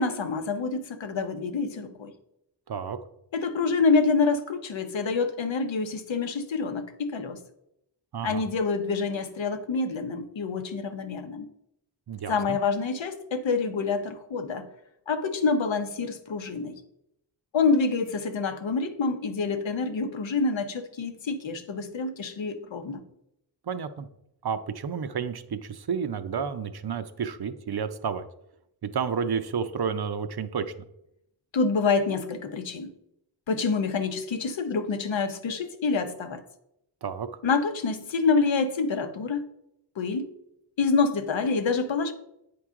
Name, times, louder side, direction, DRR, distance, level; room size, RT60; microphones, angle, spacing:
voice 1, 0.0-2.1 3.3-7.4 8.2-11.5 12.3-14.7 15.1-16.7 17.5-23.0 31.5-32.9 33.5-36.4 37.4-39.5 40.0-40.2 40.8-42.1, left 4 dB, 85° left, 7 dB, 0.8 m, -27 dB
voice 2, 2.7-3.0 8.1-8.4 12.1-12.6 23.7-24.1 24.4-28.2 28.8-30.7 37.0-37.3, right 6 dB, 60° right, 11 dB, 0.6 m, -31 dB
8.5 x 4.7 x 3.6 m, 0.80 s
wide cardioid pair, 60°, 45 cm